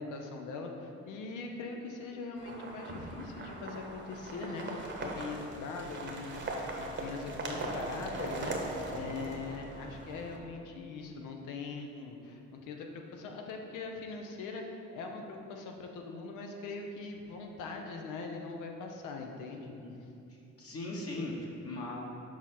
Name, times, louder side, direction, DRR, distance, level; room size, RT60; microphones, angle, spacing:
voice 1, 0.0-8.6 8.9-19.7, left 4 dB, 90° left, 3 dB, 0.8 m, -41 dB
sound 1, 2.4-10.4, right 2 dB, 40° right, 1.0 m, -40 dB
voice 2, 9.0-9.3 19.8-19.9 20.6-22.0, left 2 dB, 50° left, -4 dB, 1.2 m, -39 dB
6.0 x 4.8 x 4.3 m, 2.7 s
cardioid pair, 90°, 30 cm